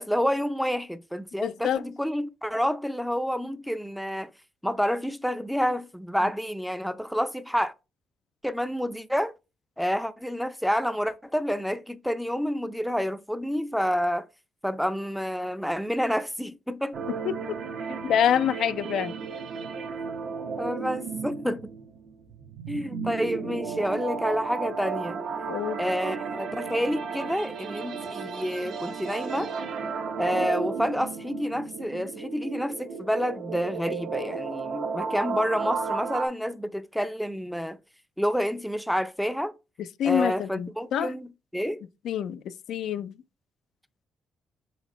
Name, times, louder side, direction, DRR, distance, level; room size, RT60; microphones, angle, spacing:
voice 1, 0.0-4.3 4.6-7.7 8.4-9.3 9.8-14.3 14.6-17.0 20.6-21.7 22.7-25.2 25.8-29.5 30.2-37.8 38.2-39.5 40.0-41.8, equal, ahead, 0.4 m, -29 dB
voice 2, 1.4-1.8 17.3-17.6 18.0-19.2 25.5-25.8 39.8-41.1 42.0-43.1, left 9 dB, 75° left, 0.3 m, -26 dB
sound 1, 16.9-36.3, right 5 dB, 70° right, 0.7 m, -34 dB
4.3 x 4.1 x 3.0 m
cardioid pair, 90°, 0 cm